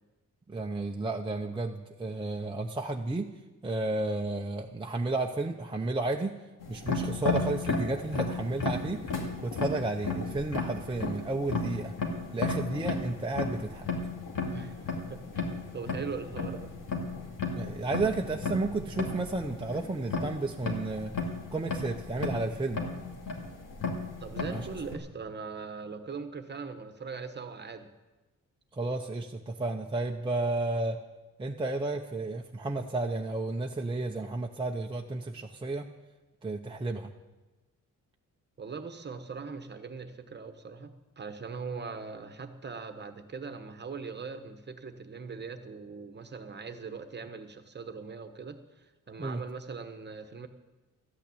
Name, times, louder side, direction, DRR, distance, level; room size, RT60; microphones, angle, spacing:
voice 1, 0.5-3.3 3.6-6.4 6.7-9.0 9.4-11.9 12.3-13.9 17.5-21.1 21.5-22.8 24.5-24.7 28.7-31.0 31.4-35.9 36.4-37.1 49.2-49.4, right 2 dB, 15° right, 1 dB, 0.7 m, -32 dB
sound 1, 6.6-25.0, left 3 dB, 75° left, 2.2 m, -34 dB
voice 2, 14.5-16.7 24.2-27.9 38.6-50.5, right 5 dB, 30° right, 8 dB, 1.1 m, -41 dB
13.5 x 9.1 x 8.5 m, 1.1 s
wide cardioid pair, 135°, 33 cm